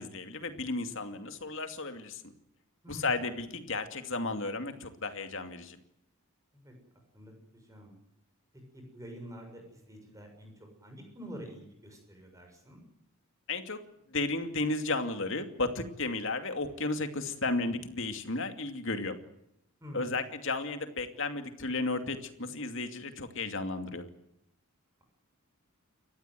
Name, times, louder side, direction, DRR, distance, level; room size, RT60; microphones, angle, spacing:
voice 1, 0.0-2.2 2.9-5.8 13.5-13.8 14.1-19.2 19.9-24.1, left 3 dB, 60° left, 7 dB, 2.5 m, -33 dB
voice 2, 2.8-3.3 6.5-6.7 7.1-8.0 8.5-12.8 19.8-20.2, equal, 15° right, 3 dB, 6.9 m, -47 dB
29.0 x 15.0 x 9.3 m, 0.78 s
head